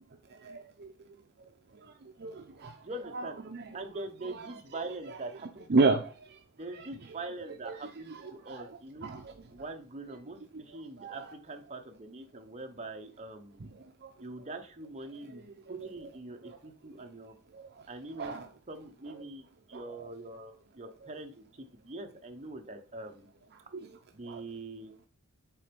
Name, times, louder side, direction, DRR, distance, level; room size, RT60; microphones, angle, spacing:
voice 1, 0.4-0.9 2.2-2.7 3.1-3.7 4.3-4.4 5.7-6.0 6.7-6.9 7.6-7.8 8.1-9.3 11.0-11.3 13.6-13.7 14.0-14.1 15.3-15.4 15.7-15.9 17.5-17.7 18.2-18.5 19.7-20.0 23.7-23.9 24.3-24.4, right 3 dB, 50° right, 0.6 m, -32 dB
voice 2, 2.8-3.3 3.7-6.0 6.6-9.1 9.5-13.6 14.2-15.4 15.7-17.3 17.9-18.3 18.7-19.4 19.7-21.4 21.8-23.3 24.1-24.9, right 2 dB, 30° right, 0.9 m, -43 dB
7.4 x 4.2 x 5.2 m
head